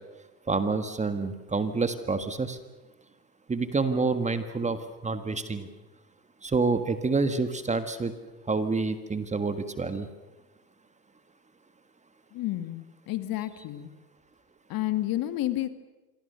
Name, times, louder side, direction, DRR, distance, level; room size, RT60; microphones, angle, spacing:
voice 1, 0.5-2.6 3.5-5.7 6.4-8.1 8.5-10.1, right 4 dB, 15° right, 10 dB, 1.6 m, -28 dB
voice 2, 12.3-13.9 14.7-15.7, left 15 dB, 45° left, 10 dB, 2.0 m, -30 dB
26.5 x 24.0 x 6.9 m, 1.2 s
hypercardioid pair, 95°, 49 cm